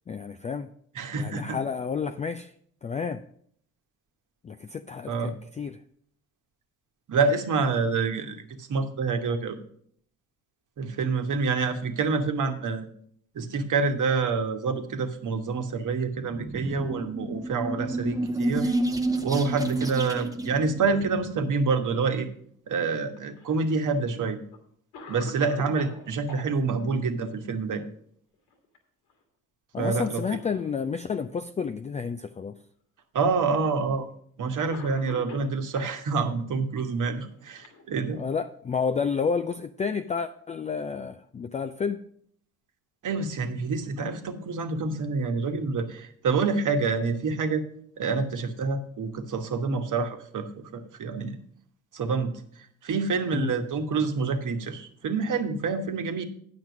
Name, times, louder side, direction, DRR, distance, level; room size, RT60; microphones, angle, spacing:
voice 1, 0.1-0.7 1.1-2.5 2.8-3.2 4.4-5.8 19.8-20.0 29.7-32.5 38.1-42.0 53.3-53.5, left 5 dB, 20° left, 9 dB, 0.4 m, -30 dB
voice 2, 0.9-1.6 5.1-5.4 7.1-9.6 10.8-12.9 13.3-18.7 19.2-22.3 22.7-24.4 25.1-27.9 29.8-30.2 33.1-34.1 34.4-38.2 43.0-47.6 48.0-51.4 51.9-56.2, right 4 dB, 45° right, 6 dB, 1.3 m, -27 dB
sound 1, 16.1-21.5, right 2 dB, 10° right, 0.9 m, -30 dB
Cough, 23.1-24.0 24.5-24.6 24.9-26.5 28.3-28.8 29.1-29.2 30.0-30.7 31.5-31.6 32.7-32.8 33.9-34.1 34.7-36.0 36.9-38.4, left 3 dB, 75° left, 1.8 m, -45 dB
9.1 x 5.9 x 6.0 m, 0.63 s
hypercardioid pair, 45°, 41 cm